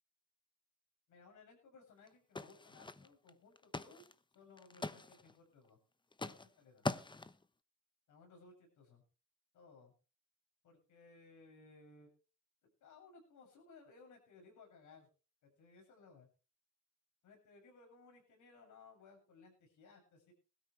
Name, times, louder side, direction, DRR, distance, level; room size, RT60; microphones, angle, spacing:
voice 1, 1.1-4.1 4.3-5.8 6.2-6.9 8.1-9.0 9.5-9.9 10.6-12.1 12.6-15.1 15.4-16.3 17.2-20.3, left 4 dB, 75° left, 2 dB, 7.8 m, -61 dB
sound 1, 2.1-2.2 2.4-3.3 3.6-4.1 4.4-5.3 6.1-6.5 6.8-7.4, left 3 dB, 15° left, 0.9 m, -42 dB
19.5 x 12.5 x 3.4 m, 0.34 s
cardioid pair, 90°, 30 cm